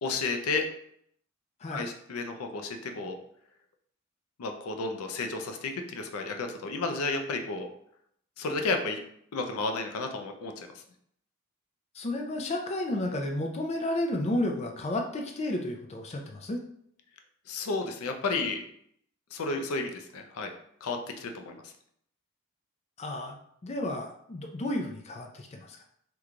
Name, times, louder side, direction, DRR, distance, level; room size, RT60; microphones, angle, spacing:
voice 1, 0.0-0.7 1.7-3.2 4.4-7.7 8.4-9.0 9.3-10.8 17.5-18.6 19.3-20.5 20.8-21.7, left 3 dB, 85° left, 5 dB, 0.5 m, -32 dB
voice 2, 11.9-16.6 23.0-23.4 23.6-25.8, left 1 dB, 30° left, 2 dB, 0.4 m, -32 dB
3.0 x 2.3 x 3.7 m, 0.68 s
head